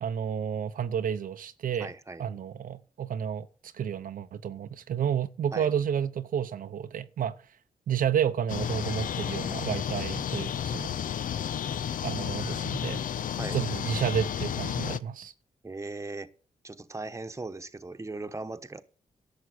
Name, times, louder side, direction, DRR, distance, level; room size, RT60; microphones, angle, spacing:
voice 1, 0.0-1.9 2.2-7.4 7.9-10.9 12.0-13.0 13.5-15.3, right 8 dB, 85° right, 0.8 m, -31 dB
voice 2, 1.8-2.3 5.5-5.7 13.4-13.6 15.6-16.3 16.6-18.8, right 3 dB, 20° right, 1.1 m, -38 dB
sound 1, 8.5-15.0, left 9 dB, 75° left, 0.5 m, -32 dB
11.5 x 7.2 x 7.9 m
cardioid pair, 75°, 14 cm